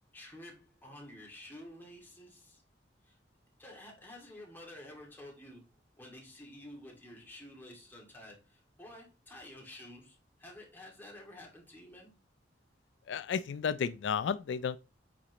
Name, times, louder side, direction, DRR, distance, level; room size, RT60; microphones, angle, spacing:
voice 1, 0.1-2.6 3.1-3.2 3.6-5.6 6.0-12.1, left 1 dB, 10° left, 2.1 m, -51 dB
voice 2, 13.1-14.8, left 7 dB, 80° left, 0.3 m, -32 dB
8.6 x 4.2 x 3.0 m
head